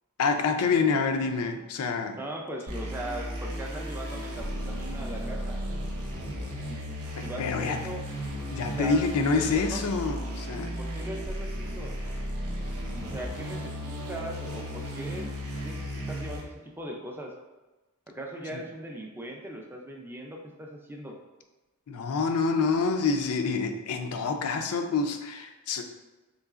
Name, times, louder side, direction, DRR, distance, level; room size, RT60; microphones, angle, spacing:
voice 1, 0.2-2.2 7.2-7.8 8.5-10.7 18.5-18.6 21.9-25.8, left 4 dB, 80° left, 6 dB, 0.4 m, -27 dB
voice 2, 2.2-5.6 6.7-6.8 7.2-8.0 8.6-9.1 9.3-9.8 10.8-12.0 13.0-15.3 15.6-17.3 18.1-21.2, right 1 dB, 10° right, 1 dB, 0.4 m, -39 dB
sound 1, 2.7-16.4, equal, 85° right, 0.8 m, -35 dB
3.8 x 3.1 x 2.4 m, 1.2 s
head